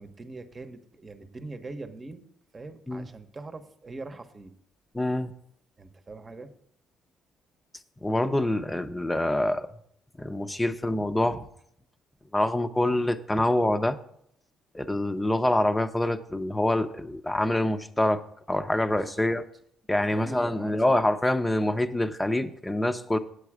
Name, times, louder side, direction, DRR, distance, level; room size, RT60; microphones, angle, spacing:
voice 1, 0.0-2.2 2.5-4.5 5.8-6.5 18.9-19.3 20.1-21.0, right 3 dB, 30° right, 8 dB, 1.1 m, -42 dB
voice 2, 4.9-5.3 8.0-9.7 10.2-11.5 12.3-14.0 14.7-18.2 18.5-19.4 19.9-23.2, left 1 dB, 15° left, 10 dB, 0.8 m, -26 dB
8.6 x 8.2 x 4.9 m, 0.69 s
supercardioid pair, 60°, 0 cm